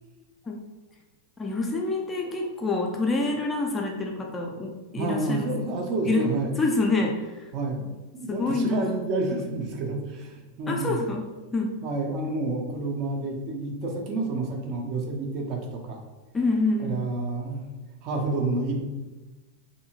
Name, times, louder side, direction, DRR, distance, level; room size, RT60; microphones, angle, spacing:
voice 1, 1.4-5.5 6.0-7.5 8.3-9.0 10.7-11.3 11.5-11.8 16.3-17.0, left 2 dB, 15° left, 1 dB, 0.4 m, -27 dB
voice 2, 5.0-6.5 7.5-7.9 8.1-11.0 11.8-16.0 16.8-17.7 18.0-18.8, right 2 dB, 40° right, 2 dB, 0.5 m, -29 dB
2.7 x 2.6 x 2.8 m, 1.2 s
figure-of-eight pair, 90°, 0 cm